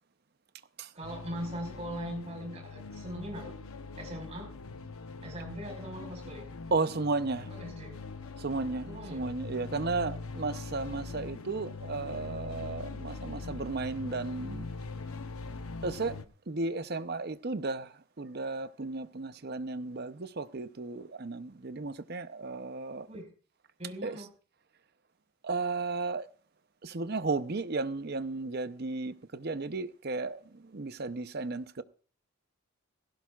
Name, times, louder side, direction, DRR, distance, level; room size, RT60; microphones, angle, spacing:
voice 1, 0.9-3.6 4.0-4.5 5.2-6.5 7.4-7.9 8.8-9.3 23.1-23.3 23.8-24.3, equal, 30° right, 5.1 m, -40 dB
sound 1, 1.0-16.2, left 3 dB, 80° left, 0.9 m, -42 dB
voice 2, 6.7-7.5 8.4-14.7 15.8-16.2 16.5-23.1 24.0-24.2 25.4-26.3 26.8-31.8, right 3 dB, 45° right, 0.7 m, -34 dB
17.0 x 15.5 x 2.4 m
head